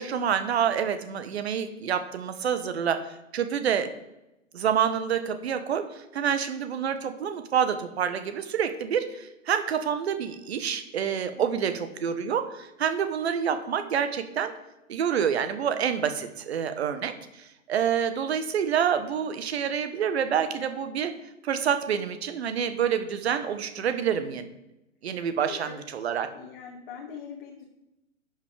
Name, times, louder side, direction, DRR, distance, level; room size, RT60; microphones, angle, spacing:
voice 1, 0.0-3.9 4.5-14.5 14.9-21.1 21.4-24.5 25.0-26.3, right 8 dB, 55° right, 9 dB, 1.2 m, -27 dB
voice 2, 11.3-11.7 25.4-25.8 26.3-27.6, left 7 dB, 40° left, 0 dB, 1.8 m, -42 dB
11.5 x 5.8 x 5.0 m, 0.91 s
figure-of-eight pair, 110°, 38 cm